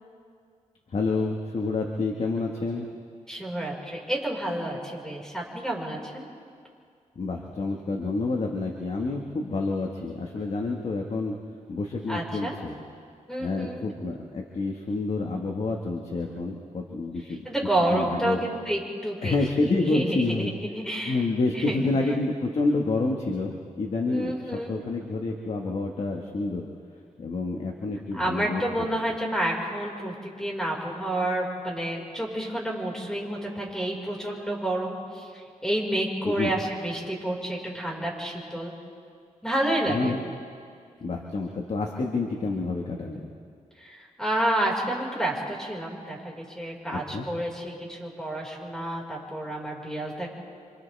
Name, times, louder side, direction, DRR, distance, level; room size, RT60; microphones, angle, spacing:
voice 1, 0.9-2.9 7.2-11.4 11.7-12.8 13.4-17.4 17.9-18.4 19.2-20.5 21.1-26.6 27.2-28.6 36.2-36.5 39.9-40.2 41.0-43.3 46.9-47.3, left 3 dB, 50° left, 0 dB, 1.8 m, -28 dB
voice 2, 3.3-6.2 12.1-12.5 13.3-13.8 17.5-19.4 19.7-21.2 21.5-21.9 24.1-24.7 28.1-38.7 39.4-40.2 43.8-50.3, right 1 dB, 5° left, -2 dB, 5.4 m, -29 dB
27.5 x 26.5 x 3.6 m, 2.2 s
cardioid pair, 80°, 13 cm